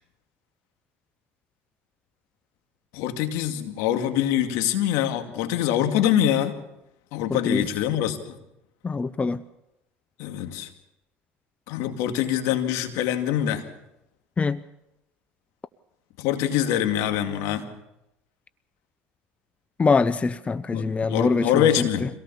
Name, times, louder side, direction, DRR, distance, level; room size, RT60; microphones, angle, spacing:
voice 1, 2.9-6.6 7.1-8.4 10.2-10.7 11.7-13.7 16.2-17.6 20.7-22.1, left 11 dB, 70° left, 7 dB, 2.4 m, -24 dB
voice 2, 8.8-9.4 14.4-14.6 19.8-21.8, left 4 dB, 25° left, 16 dB, 0.7 m, -23 dB
24.0 x 17.5 x 7.1 m, 0.87 s
supercardioid pair, 80°, 5 cm